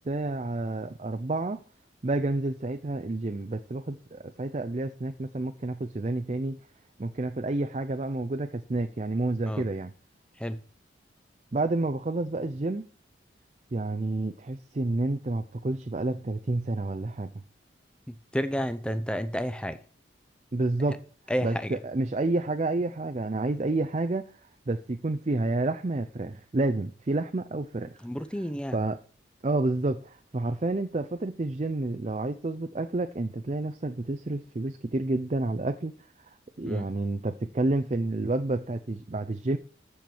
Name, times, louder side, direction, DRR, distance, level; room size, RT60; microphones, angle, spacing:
voice 1, 0.0-1.6 2.0-6.6 7.0-9.9 11.5-12.9 13.7-17.3 20.5-21.0 21.4-24.3 24.7-28.0 28.7-29.0 29.4-36.0 36.6-39.6, right 2 dB, 35° right, 0.5 m, -29 dB
voice 2, 18.1-19.8 21.3-21.7 28.0-28.8 36.6-36.9, equal, 5° left, 0.7 m, -31 dB
13.5 x 4.6 x 7.0 m
head